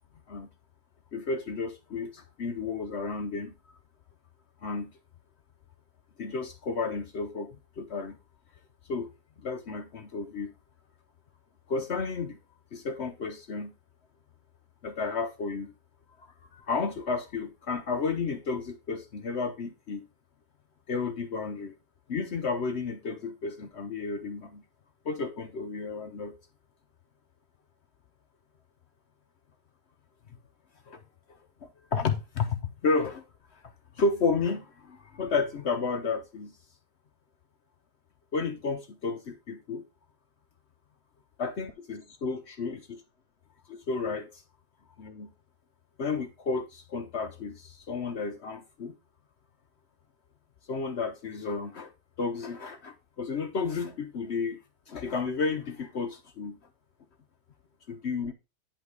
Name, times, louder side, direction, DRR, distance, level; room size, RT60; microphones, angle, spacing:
voice 1, 1.1-3.5 4.6-4.9 6.2-8.2 8.9-9.1 9.4-10.5 11.7-12.4 12.7-13.7 14.8-15.7 16.2-20.1 20.9-21.7 22.1-24.6 25.0-26.4 30.9-31.0 31.6-33.2 34.0-36.5 38.3-39.8 41.4-43.0 43.7-44.4 45.0-45.3 46.0-48.9 50.7-51.9 52.2-54.6 54.9-56.6 57.9-58.3, left 4 dB, 55° left, 0.9 m, -32 dB
10.5 x 3.4 x 4.8 m
omnidirectional pair, 1.7 m